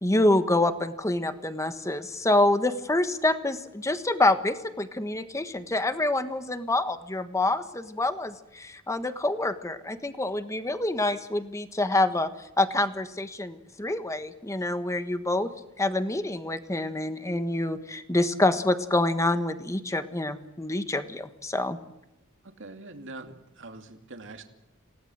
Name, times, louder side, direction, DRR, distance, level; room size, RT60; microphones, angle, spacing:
voice 1, 0.0-12.3 12.6-15.5 15.8-21.8, left 2 dB, 15° left, 9 dB, 1.4 m, -26 dB
voice 2, 22.4-24.4, right 2 dB, 65° right, 5 dB, 2.6 m, -43 dB
28.0 x 17.5 x 7.9 m, 0.90 s
head